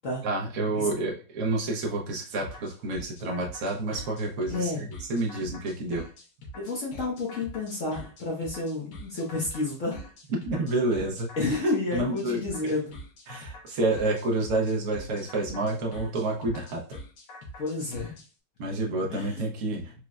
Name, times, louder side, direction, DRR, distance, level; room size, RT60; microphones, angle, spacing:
voice 1, 0.2-6.0 10.3-11.3 11.9-12.7 13.3-17.0 18.6-19.9, right 2 dB, 70° right, 0 dB, 0.8 m, -29 dB
sound 1, 2.4-18.3, equal, 75° left, 1.7 m, -44 dB
voice 2, 4.5-4.8 6.5-10.0 11.4-13.0 17.6-18.1 19.1-19.4, left 2 dB, 60° left, -4 dB, 0.8 m, -30 dB
4.4 x 2.0 x 2.4 m, 0.38 s
omnidirectional pair, 2.3 m